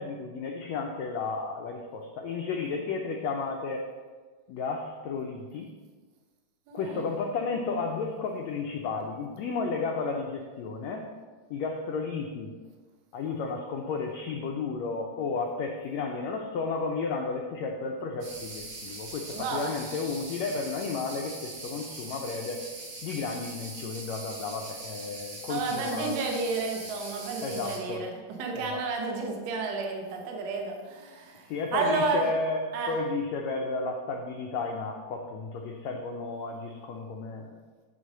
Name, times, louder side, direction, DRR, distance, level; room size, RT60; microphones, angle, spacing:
voice 1, 0.0-3.8 4.5-5.7 6.7-11.0 11.5-12.5 13.1-22.6 23.0-26.1 27.4-28.1 28.5-28.8 31.5-37.5, left 4 dB, 90° left, 2 dB, 1.5 m, -33 dB
voice 2, 6.7-7.1 19.3-19.7 25.5-32.3 32.7-32.9, right 4 dB, 60° right, 1 dB, 1.9 m, -31 dB
sound 1, 18.2-27.8, right 2 dB, 80° right, 4.0 m, -42 dB
8.3 x 4.0 x 6.3 m, 1.4 s
omnidirectional pair, 3.9 m